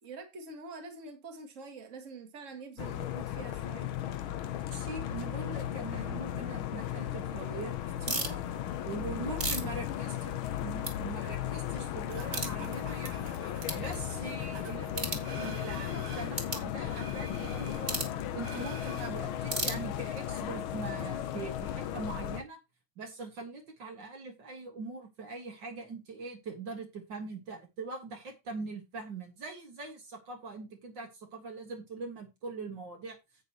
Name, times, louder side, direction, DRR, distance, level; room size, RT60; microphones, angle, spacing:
voice 1, 0.0-3.9, right 4 dB, 40° right, 2.1 m, -46 dB
sound 1, 2.8-22.4, left 11 dB, 85° left, 1.7 m, -36 dB
voice 2, 4.7-7.7 8.0-8.4 8.9-10.4 10.6-13.3 13.7-18.0 18.3-22.6 23.0-33.2, right 3 dB, 65° right, 2.3 m, -42 dB
sound 2, 8.0-8.4 9.0-10.5 10.8-10.9 11.4-11.5 12.3-12.5 13.1-13.2 13.6-13.8 14.9-15.3 16.3-16.6 17.8-18.2 19.5-20.2, right 2 dB, 25° right, 1.8 m, -34 dB
sound 3, 12.1-16.4 16.8-19.1, right 5 dB, 90° right, 2.4 m, -47 dB
10.5 x 8.5 x 2.9 m
omnidirectional pair, 2.2 m